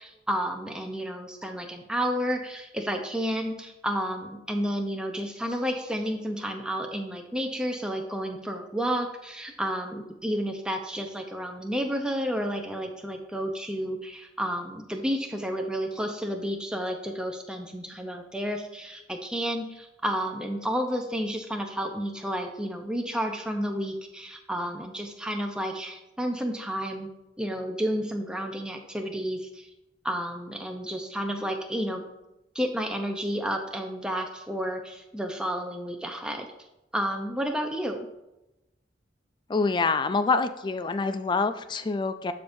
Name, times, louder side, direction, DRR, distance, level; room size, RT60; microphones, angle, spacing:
voice 1, 0.0-27.1 27.4-29.7 30.0-32.0 32.5-36.5 36.9-38.0, equal, 5° right, 3 dB, 0.7 m, -31 dB
voice 2, 39.5-42.3, left 4 dB, 25° left, 11 dB, 0.3 m, -26 dB
11.5 x 5.1 x 2.7 m, 0.92 s
head